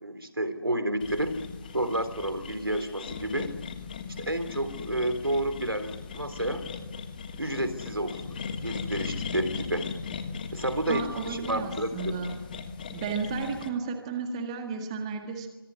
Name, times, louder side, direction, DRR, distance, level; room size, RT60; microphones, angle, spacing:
voice 1, 0.0-1.3 1.7-3.5 4.2-6.6 7.4-9.9 10.5-12.1, right 1 dB, 80° right, 10 dB, 3.5 m, -30 dB
sound 1, 1.0-13.7, left 5 dB, 25° left, 1.5 m, -38 dB
voice 2, 10.9-12.3 12.9-15.5, right 5 dB, 15° right, 5 dB, 1.7 m, -33 dB
25.5 x 20.5 x 9.8 m, 1.1 s
figure-of-eight pair, 155°, 12 cm